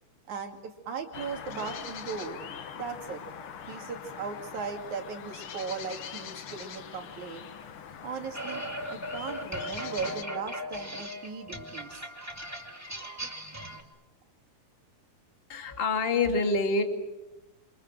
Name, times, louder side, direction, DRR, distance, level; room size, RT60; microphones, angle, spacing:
voice 1, 0.3-2.4 2.8-3.2 3.7-7.5 8.0-8.6 8.9-12.1, right 5 dB, 55° right, 4 dB, 3.6 m, -37 dB
sound 1, 1.1-10.2, left 7 dB, 75° left, 1.2 m, -42 dB
sound 2, 8.3-13.8, equal, 5° right, 1.3 m, -38 dB
voice 2, 15.5-16.8, left 3 dB, 20° left, 5 dB, 1.7 m, -26 dB
28.0 x 26.0 x 7.6 m, 1.0 s
omnidirectional pair, 4.4 m